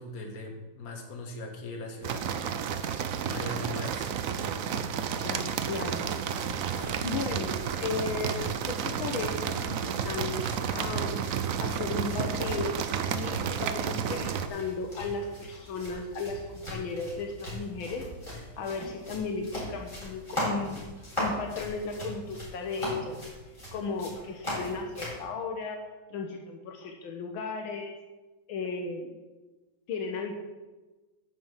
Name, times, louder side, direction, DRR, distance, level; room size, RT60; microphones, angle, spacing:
voice 1, 0.0-2.2 3.3-4.1, left 2 dB, 45° left, 2 dB, 1.9 m, -39 dB
sound 1, 2.0-14.5, right 7 dB, 80° right, 0.7 m, -31 dB
voice 2, 5.2-6.0 7.0-11.3 11.6-12.8 13.1-18.1 18.3-20.8 21.2-23.2 23.7-25.8 26.1-27.9 28.5-29.1 29.9-30.3, left 4 dB, 75° left, 3 dB, 1.7 m, -35 dB
sound 2, 6.3-25.2, equal, 15° left, 4.0 m, -40 dB
9.3 x 5.9 x 7.4 m, 1.2 s
omnidirectional pair, 2.3 m